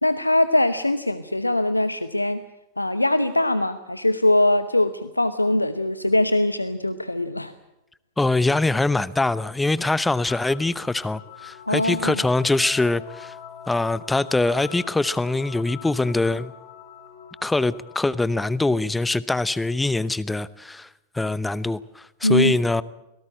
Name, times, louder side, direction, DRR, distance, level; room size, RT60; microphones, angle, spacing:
voice 1, 0.0-2.4 2.8-7.5 11.7-12.2 22.2-22.6, left 1 dB, 85° left, 12 dB, 0.9 m, -22 dB
voice 2, 8.2-13.3 13.7-16.5 17.4-20.9 21.1-22.8, left 2 dB, 5° left, 18 dB, 0.8 m, -23 dB
sound 1, 10.3-18.0, left 8 dB, 55° left, 5.4 m, -43 dB
24.5 x 18.0 x 8.8 m, 0.94 s
figure-of-eight pair, 90°, 0 cm